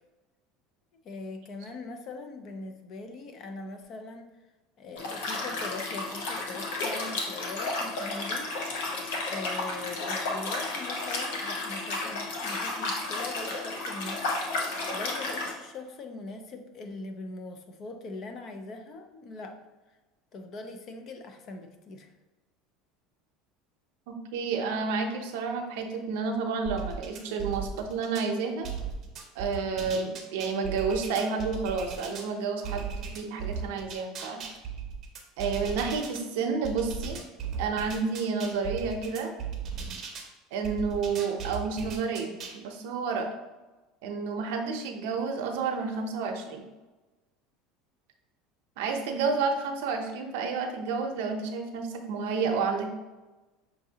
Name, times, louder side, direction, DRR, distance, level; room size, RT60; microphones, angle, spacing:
voice 1, 1.0-4.3 4.8-8.6 9.2-19.6 20.3-22.1, left 3 dB, 40° left, 6 dB, 0.5 m, -41 dB
Liquid, 5.0-15.5, left 2 dB, 85° left, 0.9 m, -32 dB
voice 2, 24.1-28.7 29.3-34.4 35.4-37.2 37.6-39.3 40.5-43.3 44.0-46.6 48.8-52.9, right 5 dB, 80° right, 4 dB, 0.6 m, -30 dB
sound 1, 26.6-28.3 28.6-32.3 32.6-36.2 36.6-40.3 40.6-42.6, right 6 dB, 35° right, 0.7 m, -37 dB
5.8 x 2.6 x 2.8 m, 1.1 s
supercardioid pair, 145°, 0 cm